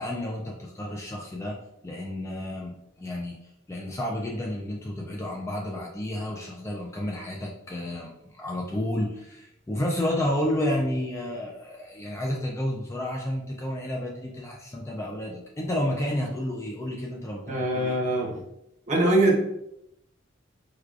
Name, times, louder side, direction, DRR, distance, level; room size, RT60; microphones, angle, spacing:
voice 1, 0.0-1.5 1.8-3.4 3.7-18.0, left 1 dB, 15° left, -1 dB, 0.3 m, -31 dB
voice 2, 17.5-18.4 18.9-19.4, right 1 dB, 35° right, -2 dB, 0.8 m, -22 dB
4.7 x 2.2 x 2.4 m, 0.82 s
head